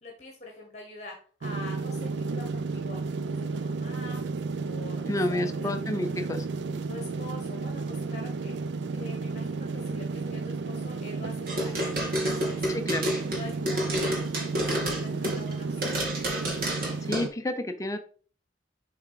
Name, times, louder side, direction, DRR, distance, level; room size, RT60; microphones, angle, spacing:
voice 1, 0.0-3.0 3.3-4.2 4.6-5.9 6.9-8.6 8.9-11.9 12.2-12.6 13.0-16.0, left 3 dB, 35° left, 0 dB, 1.2 m, -45 dB
sound 1, 1.4-17.3, right 4 dB, 75° right, 0.4 m, -33 dB
voice 2, 5.1-6.5 12.7-13.1 17.0-18.0, left 1 dB, 15° left, 8 dB, 0.5 m, -30 dB
sound 2, 11.5-15.5 15.8-17.3, equal, 50° right, 2.0 m, -29 dB
7.0 x 3.7 x 4.7 m, 0.43 s
head